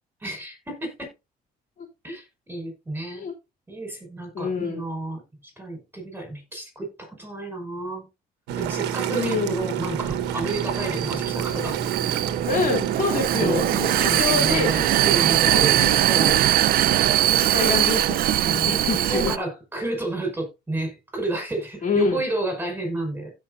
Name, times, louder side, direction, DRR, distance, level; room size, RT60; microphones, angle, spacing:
voice 1, 0.2-1.1 2.0-3.3 3.7-8.0 8.6-11.8 13.4-16.4 18.4-23.3, right 2 dB, 10° right, 5.7 m, -31 dB
voice 2, 4.3-4.8 9.1-9.6 12.5-13.9 14.1-14.9 15.5-16.0 17.3-19.3 21.8-22.2, left 4 dB, 50° left, 3.1 m, -26 dB
sound 1, 8.5-14.2, right 9 dB, 85° right, 1.4 m, -29 dB
Vehicle, 10.0-19.4, right 13 dB, 60° right, 0.6 m, -22 dB
15.5 x 5.8 x 2.6 m
cardioid pair, 110°, 17 cm